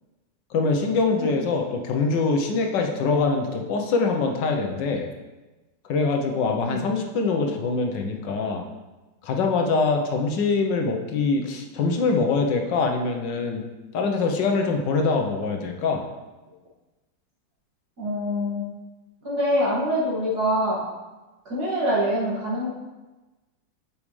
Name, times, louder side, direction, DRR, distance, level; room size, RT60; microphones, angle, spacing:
voice 1, 0.5-5.1 5.9-8.6 9.2-13.7 13.9-16.0, left 4 dB, 80° left, 3 dB, 1.5 m, -24 dB
voice 2, 18.0-18.6 19.2-20.8 21.5-22.7, equal, 60° right, -6 dB, 2.6 m, -24 dB
8.7 x 6.5 x 3.2 m, 1.2 s
omnidirectional pair, 1.9 m